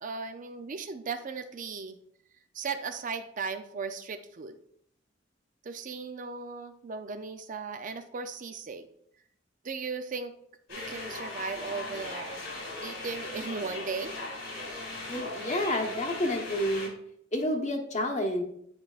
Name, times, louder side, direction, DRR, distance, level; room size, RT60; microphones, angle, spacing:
voice 1, 0.0-2.0 2.5-4.6 5.6-8.9 9.6-10.4 10.7-12.4 12.8-14.1, right 5 dB, 45° right, 8 dB, 0.5 m, -37 dB
sound 1, 10.7-16.9, left 2 dB, 80° left, 2.6 m, -38 dB
voice 2, 15.1-16.9 17.3-18.4, left 1 dB, 40° left, 3 dB, 1.0 m, -29 dB
9.6 x 4.8 x 2.4 m, 0.69 s
head